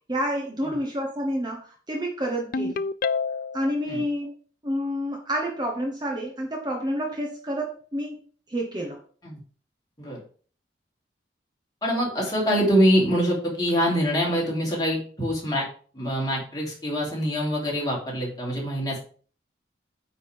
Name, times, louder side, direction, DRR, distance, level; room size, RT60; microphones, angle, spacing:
voice 1, 0.1-2.9 3.5-4.3 4.6-8.2 8.5-9.0, equal, 25° right, 0 dB, 1.1 m, -29 dB
Ringtone, 2.5-3.7, left 4 dB, 50° left, 0.3 m, -27 dB
voice 2, 11.8-15.7 15.9-19.0, equal, 20° left, -4 dB, 3.1 m, -24 dB
9.0 x 3.7 x 5.1 m, 0.42 s
head